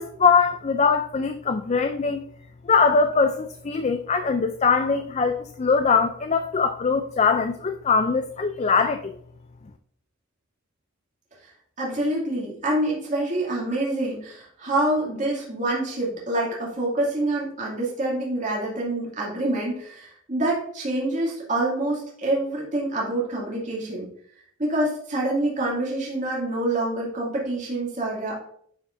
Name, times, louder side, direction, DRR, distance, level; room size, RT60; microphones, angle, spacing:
voice 1, 0.0-2.2 2.7-9.1, left 5 dB, 35° left, 7 dB, 0.4 m, -22 dB
voice 2, 11.8-24.1 24.6-28.3, right 1 dB, 40° right, -5 dB, 2.5 m, -26 dB
11.0 x 5.1 x 2.6 m, 0.64 s
head